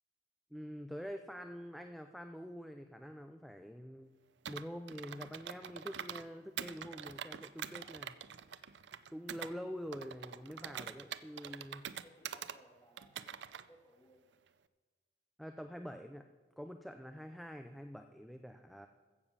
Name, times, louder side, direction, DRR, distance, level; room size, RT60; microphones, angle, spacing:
voice 1, 0.5-4.1 4.4-8.1 8.6-8.8 9.1-11.8 15.4-16.2 16.6-18.9, equal, ahead, 6 dB, 0.5 m, -46 dB
Computer keyboard, 4.5-6.3 6.6-9.5 9.9-12.6 13.0-13.6, right 8 dB, 80° right, 0.5 m, -45 dB
voice 2, 10.6-11.1 11.4-11.6 12.0-14.3, equal, 15° left, 0 dB, 2.2 m, -63 dB
15.0 x 7.1 x 7.2 m, 1.4 s
head